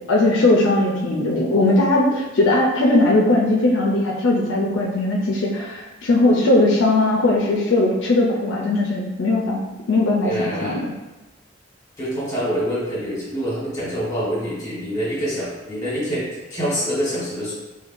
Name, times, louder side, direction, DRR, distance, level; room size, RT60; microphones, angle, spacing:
voice 1, 0.1-9.6 9.9-10.9, left 2 dB, 70° left, -1 dB, 0.4 m, -19 dB
voice 2, 10.2-10.8 12.0-17.5, equal, 20° left, -7 dB, 1.3 m, -26 dB
4.4 x 2.2 x 2.5 m, 1.1 s
head